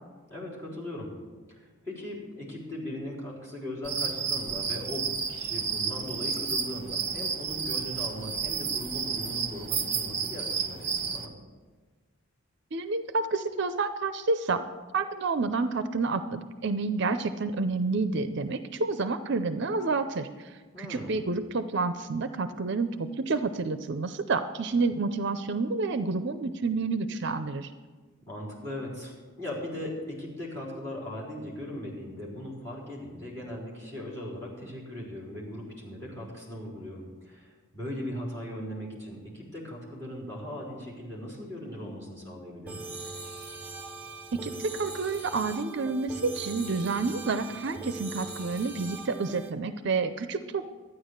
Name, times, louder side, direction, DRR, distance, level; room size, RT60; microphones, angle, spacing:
voice 1, 0.3-1.1 1.5-11.3 20.7-21.2 28.2-42.9, left 1 dB, 15° left, -4 dB, 4.2 m, -39 dB
sound 1, 3.8-11.3, right 6 dB, 30° right, 1.2 m, -31 dB
voice 2, 12.7-14.6 14.9-20.3 20.8-27.7 44.3-50.7, right 3 dB, 55° right, 10 dB, 0.5 m, -29 dB
sound 2, 42.7-49.5, right 3 dB, 5° right, 0.8 m, -41 dB
13.0 x 9.7 x 6.5 m, 1.4 s
head